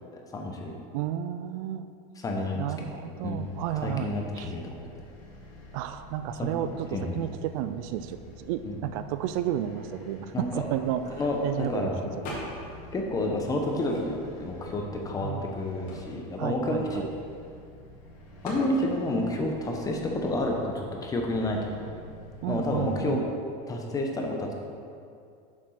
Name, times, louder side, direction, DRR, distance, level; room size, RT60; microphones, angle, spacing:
voice 1, 0.1-0.8 2.2-3.0 3.2-3.5 3.8-4.6 6.4-7.2 8.6-8.8 10.3-10.7 11.2-12.0 12.9-17.0 18.4-21.8 22.5-23.2 23.7-24.5, left 1 dB, 20° left, 1 dB, 1.0 m, -30 dB
voice 2, 0.9-1.9 2.5-4.1 4.4-4.5 5.7-11.9 12.3-12.4 15.2-15.5 16.4-17.1 22.4-23.2, right 11 dB, 65° right, 10 dB, 0.4 m, -32 dB
sound 1, 3.1-23.1, equal, 90° left, 2.0 m, -48 dB
sound 2, 12.2-12.8 13.2-14.4 15.0-15.1 15.4-17.6 18.4-18.7, left 1 dB, 45° left, 2.1 m, -41 dB
7.1 x 5.1 x 5.8 m, 2.4 s
supercardioid pair, 140°, 19 cm